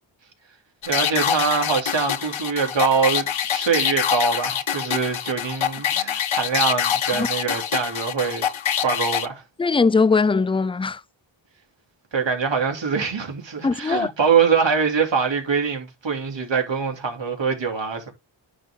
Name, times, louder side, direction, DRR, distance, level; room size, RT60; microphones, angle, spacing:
sound 1, 0.8-9.3, left 9 dB, 75° left, 0.8 m, -25 dB
voice 1, 0.9-8.5 8.8-9.4 12.1-18.1, right 5 dB, 65° right, 2.6 m, -23 dB
voice 2, 9.6-11.0 13.6-14.1, left 4 dB, 15° left, 0.3 m, -20 dB
9.9 x 3.5 x 3.7 m
cardioid pair, 65°, 48 cm